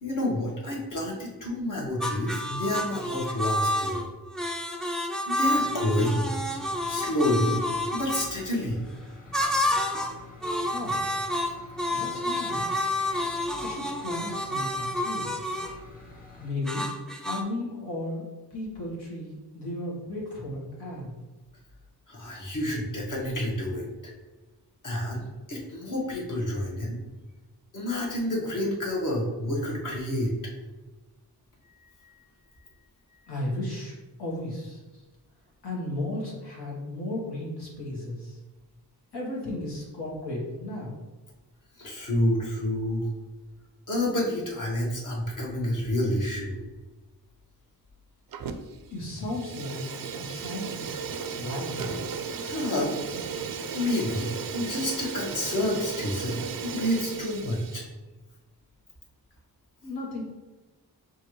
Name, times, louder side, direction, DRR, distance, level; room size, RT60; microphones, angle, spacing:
voice 1, 0.0-4.0 5.3-6.3 6.9-7.6 7.9-8.8 22.1-23.8 24.8-27.0 27.7-30.3 41.8-43.1 43.9-46.6 52.4-53.0 53.7-57.8, left 1 dB, 50° left, -3 dB, 1.4 m, -29 dB
sound 1, 2.0-8.3 9.3-10.2 10.4-15.8 16.7-17.4, left 1 dB, ahead, 0.4 m, -29 dB
sound 2, 5.4-16.5, left 3 dB, 20° left, 1.2 m, -48 dB
voice 2, 10.7-11.1 11.9-12.9 13.6-15.4 16.4-16.9 17.2-18.2 18.5-21.2 33.3-35.0 35.6-38.4 39.1-41.0 48.9-49.8 50.1-51.1 51.3-52.0 59.8-60.2, left 1 dB, 75° left, -5 dB, 1.3 m, -35 dB
Fire, 48.3-48.8 49.1-57.9, right 5 dB, 60° right, 0.5 m, -35 dB
6.0 x 2.5 x 3.1 m, 1.2 s
wide cardioid pair, 80°, 40 cm